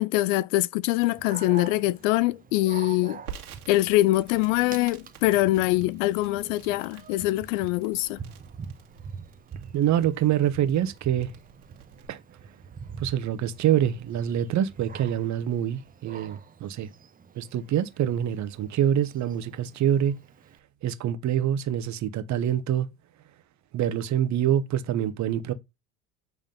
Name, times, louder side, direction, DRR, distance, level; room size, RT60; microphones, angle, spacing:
voice 1, 0.0-3.2 3.7-8.2, left 17 dB, 60° left, 0.5 m, -24 dB
Dog, 1.0-20.6, right 6 dB, 20° right, 0.8 m, -45 dB
Crackle, 3.3-12.1, right 8 dB, 80° right, 2.0 m, -49 dB
voice 2, 9.7-11.3 12.1-12.2 13.0-16.9 17.3-20.2 20.8-22.9 23.7-25.5, right 10 dB, 40° right, 1.1 m, -25 dB
7.7 x 3.6 x 5.3 m
hypercardioid pair, 80°, 44 cm